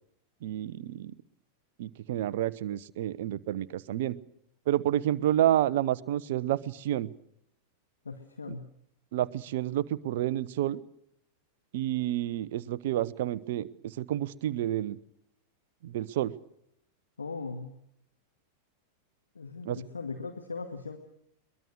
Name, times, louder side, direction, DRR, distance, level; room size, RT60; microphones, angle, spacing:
voice 1, 0.4-1.1 1.8-4.2 4.7-7.1 9.1-10.8 11.7-15.0 15.8-16.3 19.6-19.8, right 12 dB, 55° right, 18 dB, 0.9 m, -29 dB
voice 2, 8.0-8.7 17.2-17.8 19.4-21.0, left 4 dB, 75° left, 5 dB, 2.0 m, -39 dB
23.0 x 21.5 x 6.5 m, 0.74 s
figure-of-eight pair, 90°, 0 cm